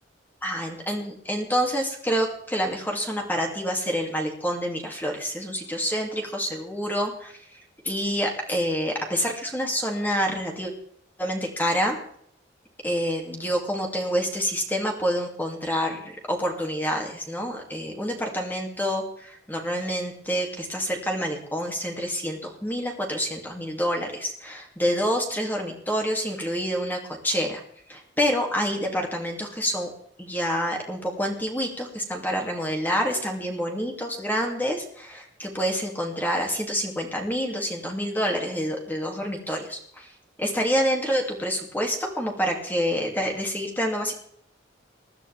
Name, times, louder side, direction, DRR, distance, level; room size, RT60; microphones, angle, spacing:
voice 1, 0.4-7.6 7.8-10.7 11.2-12.0 12.8-27.6 27.9-29.9 30.2-40.1 40.4-44.1, equal, 10° left, 1 dB, 2.7 m, -27 dB
21.0 x 12.5 x 3.6 m, 0.65 s
head